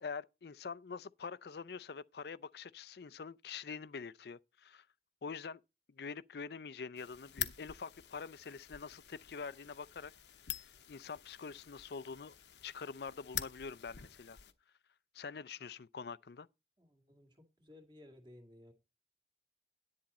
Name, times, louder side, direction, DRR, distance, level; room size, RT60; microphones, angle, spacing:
voice 1, 0.0-4.9 5.2-5.6 5.9-10.1 10.6-12.4 12.6-14.4 15.1-16.5, left 5 dB, 65° left, 0.5 m, -45 dB
sound 1, 7.0-14.5, left 11 dB, 80° left, 0.9 m, -46 dB
voice 2, 16.8-18.7, left 1 dB, 25° right, 2.0 m, -58 dB
10.5 x 8.5 x 4.2 m
head